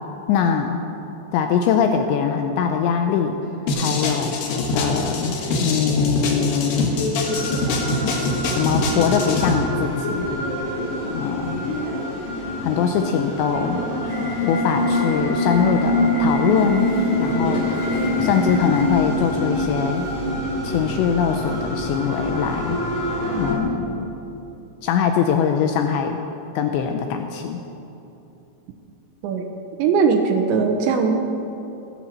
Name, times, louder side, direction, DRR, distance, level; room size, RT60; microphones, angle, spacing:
voice 1, 0.3-0.8 1.3-3.4 3.8-6.9 8.0-10.3 11.1-11.7 12.6-13.8 14.4-18.0 18.2-20.1 20.6-22.8 23.4-24.1 24.8-26.2 26.6-27.6, left 7 dB, 85° left, 5 dB, 2.6 m, -22 dB
sound 1, 3.7-9.6, left 2 dB, 60° left, 2.7 m, -24 dB
Subway metro underground, 4.4-20.4, left 2 dB, 45° left, 3.1 m, -32 dB
sound 2, 7.3-23.5, left 1 dB, 35° right, 2.3 m, -25 dB
voice 2, 29.8-31.2, right 5 dB, 80° right, 5 dB, 2.9 m, -19 dB
16.5 x 10.5 x 7.3 m, 3.0 s
omnidirectional pair, 5.7 m